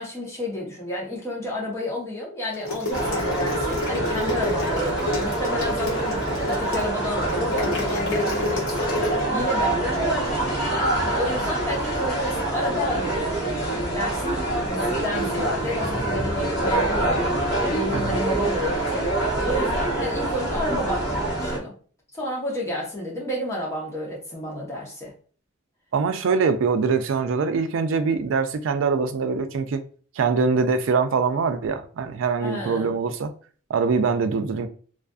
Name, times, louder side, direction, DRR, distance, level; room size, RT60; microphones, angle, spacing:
voice 1, 0.0-9.0 9.3-10.8 11.1-17.3 17.6-19.1 19.4-21.7 22.1-25.1 32.4-32.9, left 1 dB, 15° left, 0.8 m, -31 dB
sound 1, 2.5-9.2, left 2 dB, 80° left, 1.0 m, -29 dB
sound 2, 2.9-21.6, right 1 dB, 45° left, 0.9 m, -25 dB
voice 2, 25.9-29.8 30.2-33.3 33.7-34.7, right 5 dB, 70° right, 0.3 m, -23 dB
2.4 x 2.4 x 2.3 m
head